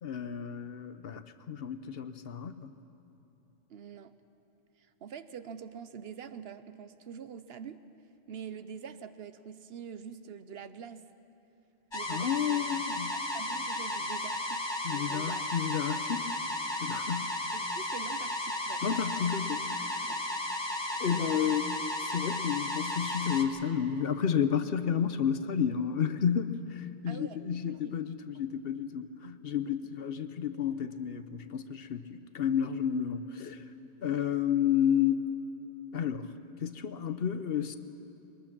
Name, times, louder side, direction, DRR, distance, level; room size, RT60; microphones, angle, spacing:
voice 1, 0.0-2.7 12.1-13.2 14.8-16.3 16.8-17.3 18.8-20.0 21.0-21.8 22.0-33.6 34.0-35.3 35.9-36.3 36.6-37.8, left 8 dB, 60° left, 11 dB, 0.9 m, -31 dB
voice 2, 3.7-4.1 5.0-7.8 8.3-11.1 11.9-12.6 13.1-15.5 17.5-18.8 20.0-20.2 21.1-21.6 27.1-27.4 27.7-28.0 29.7-29.9 34.0-34.2, right 7 dB, 65° right, 12 dB, 0.9 m, -45 dB
sound 1, 11.9-23.4, left 1 dB, 25° left, 1.0 m, -34 dB
22.5 x 20.5 x 6.0 m, 2.9 s
omnidirectional pair, 1.2 m